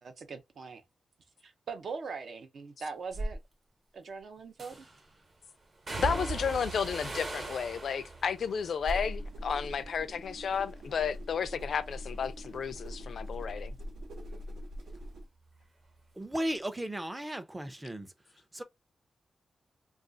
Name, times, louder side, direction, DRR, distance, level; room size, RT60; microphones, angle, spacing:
voice 1, 0.0-0.8 1.4-3.4 3.9-4.9, right 5 dB, 65° right, 0.6 m, -41 dB
sound 1, 3.1-3.4 4.6-5.1 5.9-10.1 10.4-11.0 11.4-14.7 15.0-16.1 16.4-16.5, right 3 dB, 40° right, 0.9 m, -41 dB
voice 2, 6.0-13.8, left 7 dB, 70° left, 0.4 m, -32 dB
sound 2, 8.8-15.3, equal, 85° right, 1.0 m, -41 dB
voice 3, 16.2-18.1 18.5-18.6, right 1 dB, 10° right, 0.4 m, -35 dB
2.4 x 2.3 x 3.8 m
wide cardioid pair, 145°, 0 cm